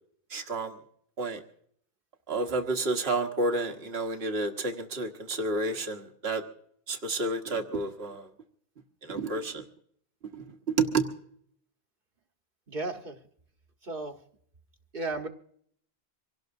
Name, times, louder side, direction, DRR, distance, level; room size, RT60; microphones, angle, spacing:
voice 1, 0.3-0.7 1.2-1.4 2.3-6.4 6.9-8.3 9.0-9.6 10.3-10.4 10.8-11.0, right 2 dB, 70° right, 4 dB, 1.6 m, -30 dB
voice 2, 12.7-13.2 13.8-14.2 14.9-15.3, right 2 dB, 55° right, 5 dB, 1.5 m, -34 dB
25.0 x 17.5 x 2.6 m, 0.65 s
omnidirectional pair, 1.1 m